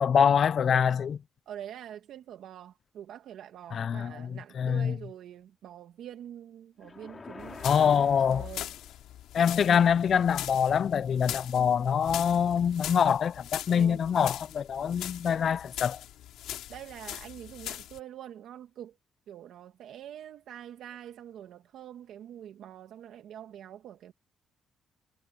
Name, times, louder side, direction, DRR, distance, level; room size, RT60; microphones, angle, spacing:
voice 1, 0.0-1.2 3.7-5.0 7.6-8.5 9.3-16.0, left 7 dB, 55° left, 0.4 m, -25 dB
voice 2, 1.5-8.7 9.6-9.8 11.3-11.4 13.7-14.1 16.7-19.0 19.3-24.1, right 10 dB, 75° right, 1.7 m, -45 dB
sound 1, 6.8-9.1, left 4 dB, 30° left, 2.8 m, -47 dB
sound 2, 7.4-18.0, left 13 dB, 85° left, 4.0 m, -41 dB
cardioid pair, 90°, 0 cm